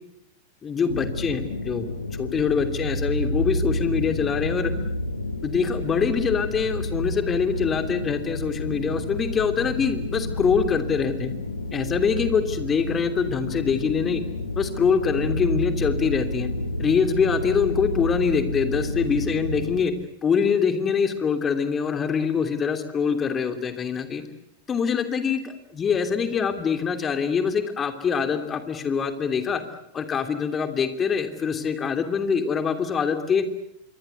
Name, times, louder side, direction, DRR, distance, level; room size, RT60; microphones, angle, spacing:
voice 1, 0.6-1.9 2.2-4.7 5.4-11.3 11.7-14.2 14.6-16.5 16.8-19.9 20.2-24.2 24.7-29.6 29.9-33.4, left 6 dB, 20° left, 9 dB, 2.9 m, -24 dB
sound 1, 0.9-19.8, left 1 dB, 75° left, 2.2 m, -30 dB
27.0 x 23.5 x 8.2 m, 0.78 s
figure-of-eight pair, 90°, 0 cm